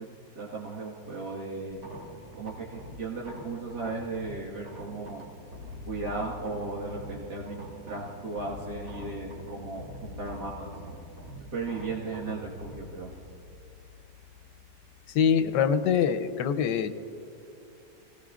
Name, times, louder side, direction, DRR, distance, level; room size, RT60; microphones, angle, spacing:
voice 1, 0.3-1.8 2.4-5.2 5.9-10.7 11.5-13.1, right 3 dB, 70° right, -6 dB, 2.3 m, -36 dB
sound 1, 1.7-16.0, left 1 dB, 85° right, 3.4 m, -45 dB
voice 2, 15.1-16.9, left 7 dB, 85° left, 10 dB, 1.3 m, -24 dB
25.5 x 18.5 x 2.5 m, 2.7 s
omnidirectional pair, 1.9 m